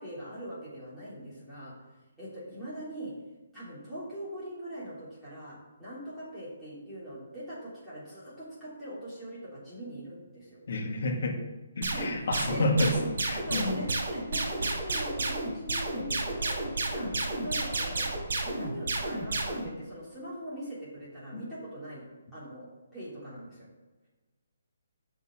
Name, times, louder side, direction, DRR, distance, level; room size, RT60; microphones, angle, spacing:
voice 1, 0.0-1.7 2.2-3.1 3.5-10.6 11.9-12.7 13.5-18.1 18.4-22.1 22.3-23.7, right 1 dB, 5° left, -12 dB, 3.3 m, -42 dB
voice 2, 10.7-11.4 11.8-12.9 13.2-13.8, left 2 dB, 60° left, 3 dB, 1.8 m, -29 dB
sound 1, 11.8-19.7, right 2 dB, 65° right, 3.0 m, -31 dB
6.9 x 6.6 x 7.2 m, 1.2 s
hypercardioid pair, 170°, 0 cm